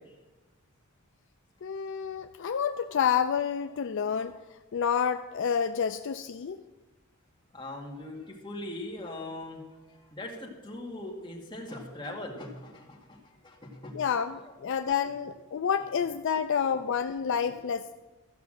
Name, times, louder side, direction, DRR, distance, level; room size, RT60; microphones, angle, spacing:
voice 1, 1.6-4.4 4.7-6.6 13.9-17.9, left 7 dB, 60° left, 9 dB, 0.4 m, -29 dB
voice 2, 7.5-9.6 9.9-14.0 14.4-14.7, left 1 dB, 20° left, -1 dB, 2.0 m, -41 dB
14.0 x 5.9 x 7.7 m, 1.2 s
head